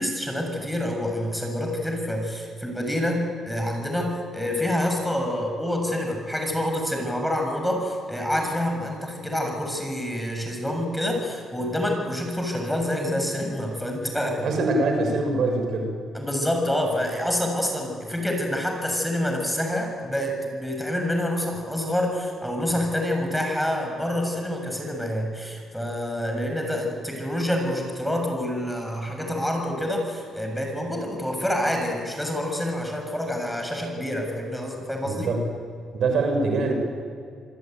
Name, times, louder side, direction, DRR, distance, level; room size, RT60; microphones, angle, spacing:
voice 1, 0.0-14.5 16.1-35.3, left 1 dB, 5° left, 3 dB, 6.9 m, -27 dB
voice 2, 14.4-16.0 35.0-35.4 35.9-36.7, right 3 dB, 65° right, 3 dB, 6.3 m, -23 dB
27.0 x 20.0 x 9.3 m, 2.4 s
cardioid pair, 90°, 0 cm